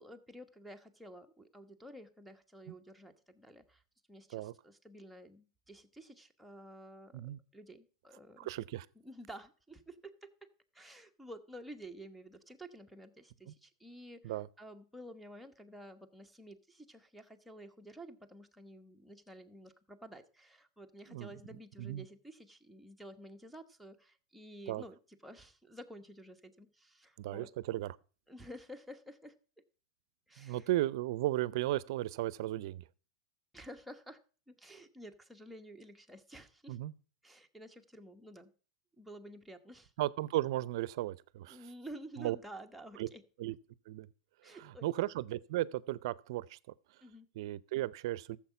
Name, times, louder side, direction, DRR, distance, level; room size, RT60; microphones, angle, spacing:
voice 1, 0.0-3.8 4.1-7.3 7.5-8.5 9.0-10.5 10.7-27.5 28.3-29.3 30.3-30.7 33.5-34.2 34.5-36.8 37.2-38.5 39.0-39.9 41.5-43.2 44.4-44.9 47.0-47.3, right 1 dB, ahead, 1.2 m, -51 dB
voice 2, 8.4-8.9 13.5-13.6 14.2-14.5 21.1-21.3 21.8-22.0 24.7-24.8 27.2-28.0 30.4-32.8 36.7-36.9 40.0-41.6 42.2-42.4 43.0-43.1 43.4-43.6 43.9-44.1 44.5-44.6 44.8-46.6 47.4-48.4, right 15 dB, 65° right, 0.6 m, -35 dB
13.5 x 7.4 x 5.8 m
supercardioid pair, 130°, 3 cm